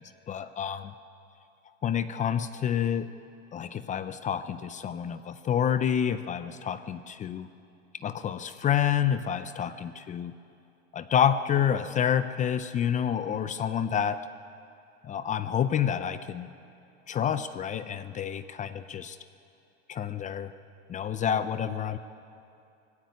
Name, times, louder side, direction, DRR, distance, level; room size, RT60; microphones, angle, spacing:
voice 1, 0.3-0.9 1.8-3.1 3.5-7.5 8.0-10.3 10.9-14.2 15.0-16.5 17.1-19.2 19.9-20.5 20.9-22.0, left 9 dB, 20° left, 12 dB, 0.6 m, -28 dB
19.5 x 16.0 x 9.4 m, 2.6 s
supercardioid pair, 130°, 34 cm